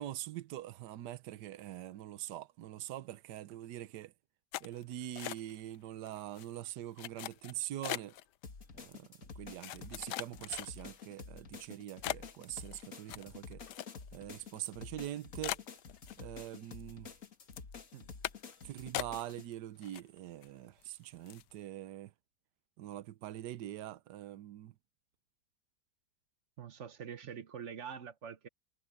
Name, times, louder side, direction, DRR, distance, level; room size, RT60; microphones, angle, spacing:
voice 1, 0.0-4.1 4.6-8.2 8.7-13.6 14.1-15.6 16.2-17.1 18.6-22.1 22.8-24.7, right 13 dB, 75° right, 1.3 m, -44 dB
sound 1, 4.5-5.8 6.1-6.5 7.0-8.2 8.9-9.0 9.6-11.0 11.5-11.7 12.0-14.2 14.5-14.6 15.0-15.1 15.4-16.5 16.8-17.2 17.5-17.7 18.2-18.6 18.9-19.5 19.8-20.5 20.8-20.9 21.3-21.5, left 14 dB, 80° left, 1.2 m, -41 dB
sound 2, 8.4-19.5, left 5 dB, 50° left, 2.1 m, -50 dB
voice 2, 26.6-28.5, right 7 dB, 50° right, 1.0 m, -45 dB
omnidirectional pair, 1.8 m